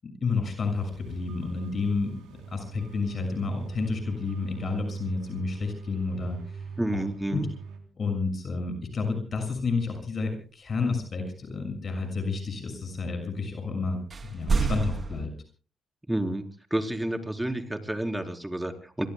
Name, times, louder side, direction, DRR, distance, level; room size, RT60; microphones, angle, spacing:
voice 1, 0.0-6.6 6.9-7.0 7.3-7.5 8.0-14.0 14.3-15.3, left 4 dB, 50° left, 5 dB, 6.5 m, -30 dB
sound 1, 0.6-7.8, right 6 dB, 90° right, 3.6 m, -41 dB
voice 2, 6.8-7.5 16.1-16.4 16.7-19.1, right 1 dB, 10° right, 4 dB, 4.1 m, -30 dB
sound 2, 14.1-15.3, right 4 dB, 45° right, 2.8 m, -27 dB
28.5 x 22.5 x 2.3 m, 0.39 s
supercardioid pair, 60°, 0 cm